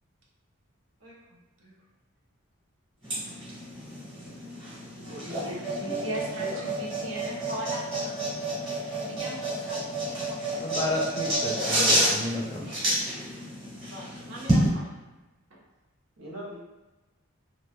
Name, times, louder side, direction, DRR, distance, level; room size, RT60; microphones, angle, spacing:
voice 1, 1.0-1.7 5.1-6.8 16.2-16.6, equal, 90° right, -7 dB, 1.2 m, -42 dB
sound 1, 3.0-14.7, right 1 dB, 25° right, 1.4 m, -29 dB
voice 2, 4.7-8.7 9.0-10.9 13.9-15.0 15.5-15.6, right 1 dB, 65° right, -2 dB, 0.6 m, -40 dB
voice 3, 10.5-12.7, left 1 dB, 20° left, -4 dB, 0.5 m, -32 dB
3.0 x 2.9 x 2.2 m, 1.1 s
head